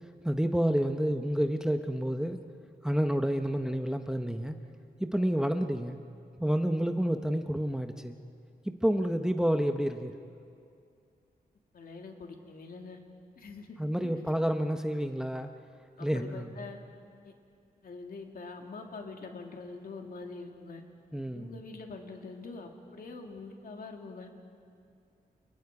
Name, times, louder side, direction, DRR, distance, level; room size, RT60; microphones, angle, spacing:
voice 1, 0.2-2.4 2.8-4.6 5.0-6.0 6.4-8.2 8.6-10.1 13.8-15.5 16.0-16.5 21.1-21.6, equal, 5° right, 6 dB, 0.8 m, -29 dB
voice 2, 11.7-13.0 13.4-14.2 16.0-16.8 17.2-17.3 17.8-20.8 21.3-24.3, left 3 dB, 65° left, 2 dB, 2.4 m, -44 dB
29.5 x 29.0 x 4.8 m, 2.4 s
wide cardioid pair, 160°, 16 cm